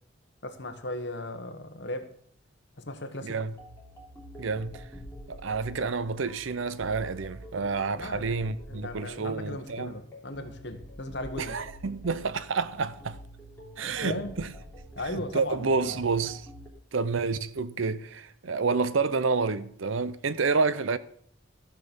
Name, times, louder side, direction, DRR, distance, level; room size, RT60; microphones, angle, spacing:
voice 1, 0.4-2.1 2.8-3.4 7.9-11.6 13.8-14.4 14.9-16.0, left 1 dB, 55° left, 1.4 m, -37 dB
voice 2, 3.2-3.5 4.4-4.8 5.3-9.9 11.4-13.2 13.8-14.5 15.1-16.5 16.9-21.0, right 4 dB, 75° right, 0.6 m, -29 dB
sound 1, 3.6-16.7, equal, 10° left, 3.1 m, -47 dB
14.5 x 6.0 x 7.0 m
head